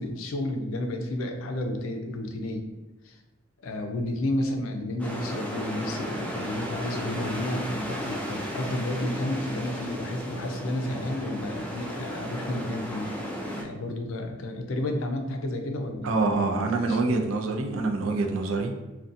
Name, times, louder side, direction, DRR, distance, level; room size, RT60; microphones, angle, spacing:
voice 1, 0.0-2.7 3.0-3.2 3.6-13.1 13.5-17.0, left 1 dB, 80° left, 4 dB, 0.4 m, -31 dB
sound 1, 5.0-13.6, equal, 5° left, 0.3 m, -34 dB
voice 2, 16.0-18.8, right 3 dB, 80° right, 3 dB, 0.4 m, -26 dB
2.5 x 2.2 x 2.5 m, 1.1 s
head